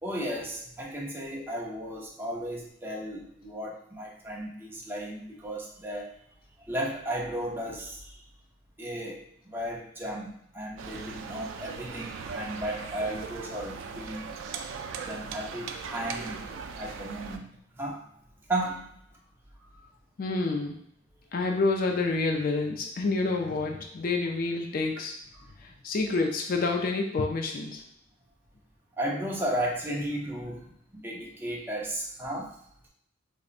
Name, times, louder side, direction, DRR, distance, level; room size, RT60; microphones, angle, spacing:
voice 1, 0.0-6.2 6.6-8.1 8.8-14.3 15.0-16.4 16.8-17.5 17.7-18.1 18.5-18.9 25.4-25.5 29.0-32.6, right 1 dB, 10° right, -2 dB, 0.5 m, -34 dB
sound 1, 10.8-17.4, right 5 dB, 80° right, 0.3 m, -39 dB
voice 2, 20.2-20.8 21.3-25.2 25.6-27.8, left 3 dB, 45° left, 2 dB, 0.4 m, -28 dB
4.9 x 2.1 x 2.5 m, 0.72 s
head